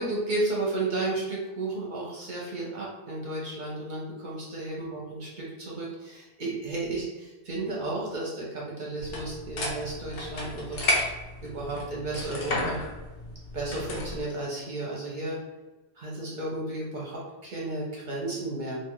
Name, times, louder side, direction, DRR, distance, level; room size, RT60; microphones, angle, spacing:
voice 1, 0.0-10.8 11.4-12.8 13.5-15.4 16.0-18.8, right 2 dB, 50° right, -4 dB, 0.7 m, -33 dB
sound 1, 9.0-14.2, left 1 dB, 60° left, 0.8 m, -32 dB
2.7 x 2.4 x 3.0 m, 1.1 s
omnidirectional pair, 1.2 m